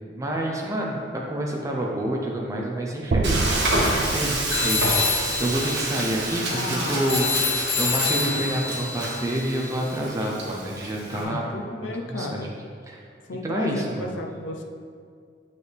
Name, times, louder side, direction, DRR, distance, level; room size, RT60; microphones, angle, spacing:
voice 1, 0.1-5.1 5.4-11.4 11.8-12.5 12.9-13.0 13.4-14.1, right 1 dB, 15° right, -2 dB, 0.7 m, -28 dB
sound 1, 3.1-7.3, right 3 dB, 50° right, 0.3 m, -30 dB
Frying (food), 3.2-11.2, right 2 dB, 70° right, 1.5 m, -28 dB
sound 2, 4.5-10.0, left 5 dB, 35° left, 0.4 m, -28 dB
voice 2, 6.5-7.4 11.1-12.5 13.3-14.6, left 2 dB, 90° left, 2 dB, 0.6 m, -33 dB
6.9 x 6.7 x 3.4 m, 2.2 s
head